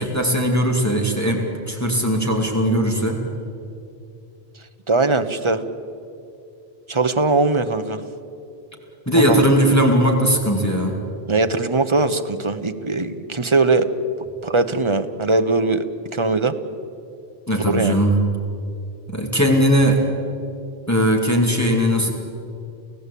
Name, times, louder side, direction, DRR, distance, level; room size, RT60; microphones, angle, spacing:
voice 1, 0.0-3.2 9.1-11.0 17.5-18.2 19.1-20.0 20.9-22.1, equal, 15° left, 0 dB, 2.5 m, -19 dB
voice 2, 4.9-5.6 6.9-8.0 9.1-9.4 11.3-13.9 14.4-15.8 16.1-16.5 17.7-17.9, right 3 dB, 30° right, 8 dB, 1.0 m, -20 dB
29.5 x 16.0 x 8.4 m, 2.6 s
omnidirectional pair, 1.1 m